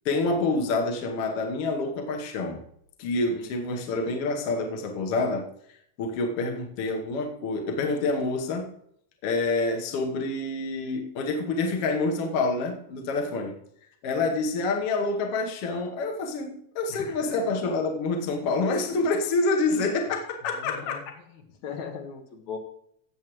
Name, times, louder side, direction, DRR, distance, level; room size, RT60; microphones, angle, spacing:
voice 1, 0.1-2.6 3.0-5.5 6.0-8.8 9.2-13.5 14.0-21.1, left 3 dB, 60° left, 2.0 m, -27 dB
voice 2, 16.9-17.3 20.5-21.0 21.6-22.6, left 6 dB, 75° left, 2.5 m, -38 dB
16.5 x 7.4 x 3.1 m
omnidirectional pair, 3.4 m